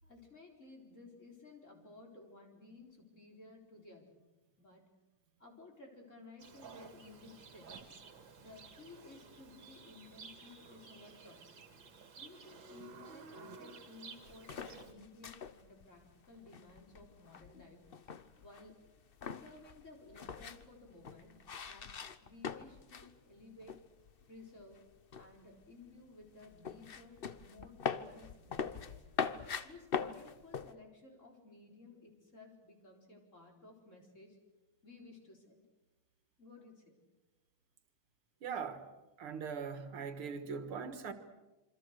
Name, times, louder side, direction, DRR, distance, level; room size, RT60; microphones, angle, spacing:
voice 1, 0.0-4.2 4.6-4.9 5.4-7.9 8.4-11.6 12.2-17.8 18.4-18.8 19.2-21.3 21.7-21.9 22.2-23.8 24.3-24.9 25.2-29.0 29.6-34.4 34.8-35.6 36.4-37.0, left 3 dB, 35° left, 4.7 m, -56 dB
Livestock farm animals working animals, 6.4-14.9, right 4 dB, 60° right, 2.8 m, -54 dB
sound 1, 14.2-23.1 23.4-24.3 24.6-30.7, left 6 dB, 90° left, 0.5 m, -42 dB
voice 2, 38.4-38.9 39.2-41.1, right 6 dB, 80° right, 2.5 m, -41 dB
27.5 x 25.0 x 6.6 m
omnidirectional pair, 2.4 m